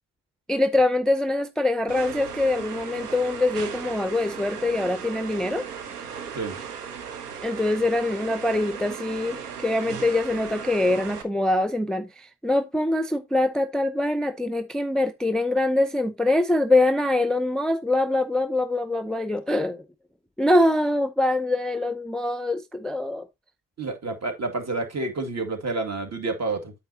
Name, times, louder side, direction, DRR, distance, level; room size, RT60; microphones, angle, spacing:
voice 1, 0.5-5.6 7.4-19.8 20.4-23.3, left 2 dB, ahead, 0.6 m, -24 dB
sound 1, 1.9-11.2, right 7 dB, 90° right, 1.1 m, -37 dB
voice 2, 23.8-26.7, right 3 dB, 35° right, 2.3 m, -29 dB
8.9 x 6.7 x 2.8 m
hypercardioid pair, 50°, 45 cm